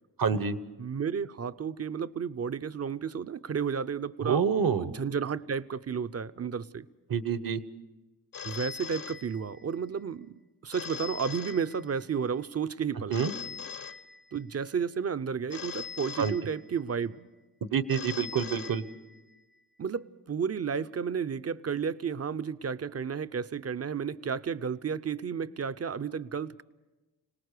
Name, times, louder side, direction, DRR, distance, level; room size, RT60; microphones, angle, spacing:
voice 1, 0.2-0.6 4.2-4.9 7.1-7.6 13.1-13.3 16.2-16.3 17.6-18.8, right 6 dB, 55° right, 1.1 m, -27 dB
voice 2, 0.8-4.4 4.8-6.9 8.4-13.2 14.3-17.3 19.8-26.6, right 6 dB, 35° right, 0.7 m, -32 dB
Telephone, 8.3-9.8 10.7-12.2 13.1-14.6 15.5-17.0 17.9-19.4, left 7 dB, 55° left, 1.1 m, -42 dB
25.5 x 18.5 x 6.7 m
cardioid pair, 55°, 40 cm